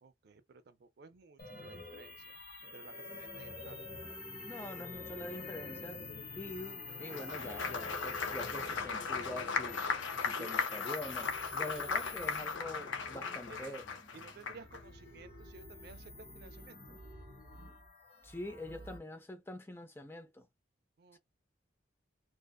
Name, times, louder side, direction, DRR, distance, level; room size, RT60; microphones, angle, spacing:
voice 1, 0.0-3.9 10.3-10.5 13.2-13.7 14.1-17.0 21.0-21.2, right 4 dB, 55° right, 0.4 m, -55 dB
sound 1, 1.4-19.0, left 3 dB, 50° left, 1.1 m, -47 dB
voice 2, 4.4-6.0 6.4-9.9 10.2-13.8 18.2-20.5 21.1-21.2, left 1 dB, 10° left, 0.5 m, -45 dB
Applause, 7.0-14.8, left 5 dB, 75° left, 0.5 m, -37 dB
2.6 x 2.4 x 2.2 m
head